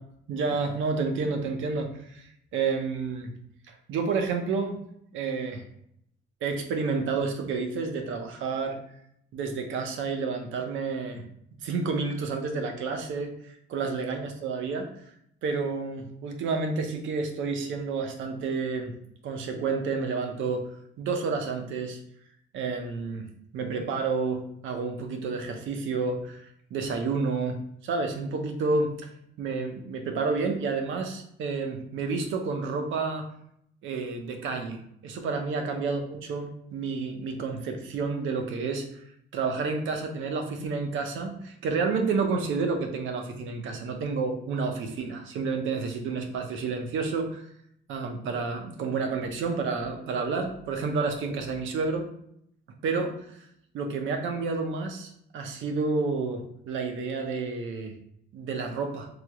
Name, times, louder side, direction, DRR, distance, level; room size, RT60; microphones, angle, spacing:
voice 1, 0.3-3.3 3.7-4.8 5.1-5.6 6.4-8.8 9.3-11.2 11.6-13.3 13.7-14.9 15.4-18.9 19.2-20.7 21.0-22.0 22.5-23.3 23.5-27.6 27.8-28.9 29.4-33.2 33.8-39.0 39.3-47.5 47.9-52.1 52.8-53.4 53.7-58.0 58.3-59.1, right 4 dB, 80° right, 4 dB, 0.6 m, -30 dB
3.2 x 2.0 x 3.4 m, 0.72 s
cardioid pair, 90°, 20 cm